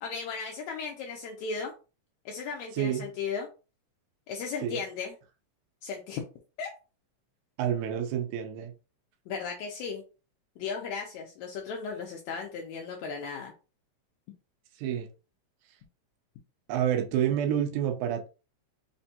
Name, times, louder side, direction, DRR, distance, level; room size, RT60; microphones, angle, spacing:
voice 1, 0.0-1.7 2.3-3.5 4.3-5.1 5.8-6.3 6.6-6.7 9.3-10.0 10.6-13.5, left 5 dB, 80° left, 1 dB, 1.9 m, -36 dB
voice 2, 2.8-3.1 4.6-4.8 7.6-8.7 14.8-15.1 16.7-18.3, right 10 dB, 90° right, 4 dB, 2.1 m, -28 dB
5.0 x 2.2 x 2.7 m, 0.33 s
omnidirectional pair, 3.3 m